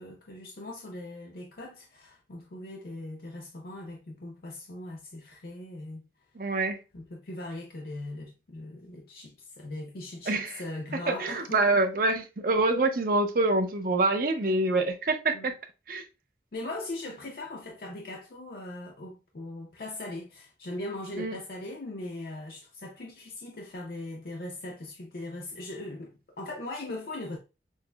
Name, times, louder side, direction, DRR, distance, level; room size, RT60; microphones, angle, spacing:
voice 1, 0.0-6.1 6.9-11.8 15.3-15.5 16.5-27.4, left 2 dB, 55° left, 0.6 m, -40 dB
voice 2, 6.4-6.8 10.3-10.5 11.1-15.5 15.9-16.0 21.2-21.4, right 2 dB, 50° right, 0.6 m, -26 dB
6.2 x 2.1 x 2.2 m
head